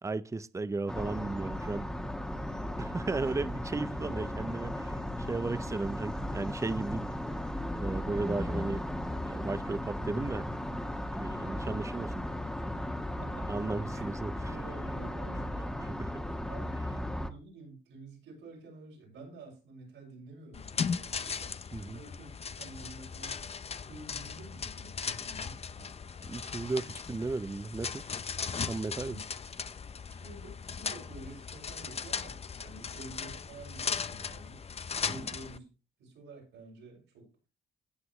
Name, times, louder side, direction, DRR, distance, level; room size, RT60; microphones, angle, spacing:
voice 1, 0.0-1.9 2.8-5.0 5.3-7.1 7.8-8.8 9.2-10.5 11.1-12.2 13.5-14.5 16.0-16.1 21.7-22.0 26.3-28.1 28.7-29.2, right 3 dB, 15° right, 0.6 m, -35 dB
sound 1, 0.9-17.3, left 1 dB, 5° left, 1.5 m, -36 dB
voice 2, 2.2-2.7 3.1-3.3 3.9-4.3 13.2-14.0 14.4-16.0 16.5-22.3 22.6-26.2 29.0-29.2 30.1-35.7 36.0-37.3, right 2 dB, 85° right, 6.6 m, -50 dB
sound 2, 20.5-35.6, left 6 dB, 30° left, 0.6 m, -38 dB
17.5 x 6.0 x 3.1 m
cardioid pair, 90°, 20 cm